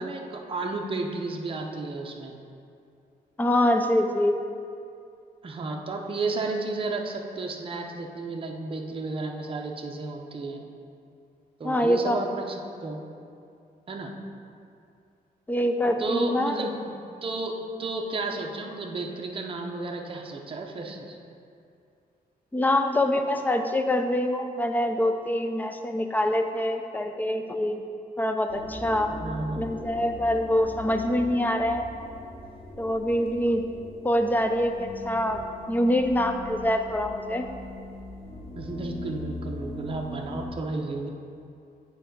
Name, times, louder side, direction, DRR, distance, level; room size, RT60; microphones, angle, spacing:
voice 1, 0.0-2.3 5.4-10.6 11.6-13.0 13.9-14.1 16.0-16.7 17.2-21.2 29.2-29.7 38.6-41.1, right 3 dB, 35° right, 1 dB, 0.6 m, -32 dB
voice 2, 3.4-4.4 11.6-12.2 15.5-16.6 22.5-27.8 28.2-29.1 29.6-31.9 32.8-33.6 34.0-35.4 35.7-37.5, left 1 dB, 10° left, 6 dB, 0.4 m, -25 dB
sound 1, 28.5-40.5, left 1 dB, 40° left, 1.2 m, -40 dB
7.0 x 4.7 x 5.2 m, 2.5 s
wide cardioid pair, 165°, 16 cm